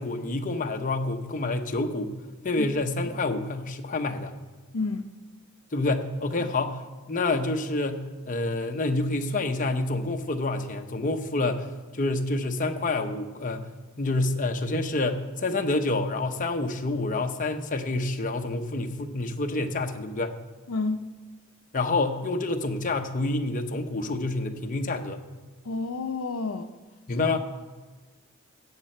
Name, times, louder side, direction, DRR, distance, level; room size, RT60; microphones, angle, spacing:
voice 1, 0.0-2.2 2.4-4.3 5.7-6.8 7.1-11.7 11.9-13.6 14.0-20.3 21.7-25.2 27.1-27.4, left 2 dB, 40° left, 0.8 m, -28 dB
voice 2, 4.7-5.1 20.7-21.0 25.6-26.7 27.1-27.2, left 3 dB, 75° left, 0.6 m, -30 dB
16.5 x 7.4 x 4.4 m
head